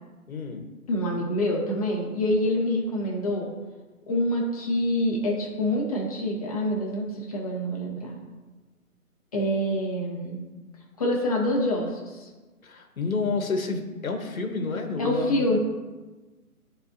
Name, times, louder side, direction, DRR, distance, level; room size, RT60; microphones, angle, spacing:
voice 1, 0.3-0.6 12.6-15.6, left 4 dB, 65° left, 5 dB, 1.3 m, -29 dB
voice 2, 0.9-3.5 4.1-8.2 9.3-10.5 11.0-12.3 15.0-15.6, left 1 dB, 25° left, -2 dB, 1.2 m, -26 dB
12.5 x 4.1 x 2.7 m, 1.2 s
hypercardioid pair, 160°, 45 cm